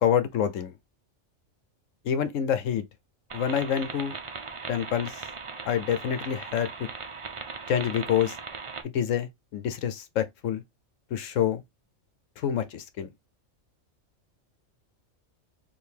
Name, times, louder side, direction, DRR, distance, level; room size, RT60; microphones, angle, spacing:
voice 1, 0.0-0.7 2.0-2.8 3.3-4.2 4.7-5.1 5.7-6.7 7.7-8.3 8.9-10.6 11.1-11.6 12.4-13.1, left 9 dB, 75° left, 1.0 m, -27 dB
sound 1, 3.3-8.8, right 4 dB, 40° right, 0.5 m, -39 dB
4.6 x 2.7 x 3.4 m
omnidirectional pair, 1.4 m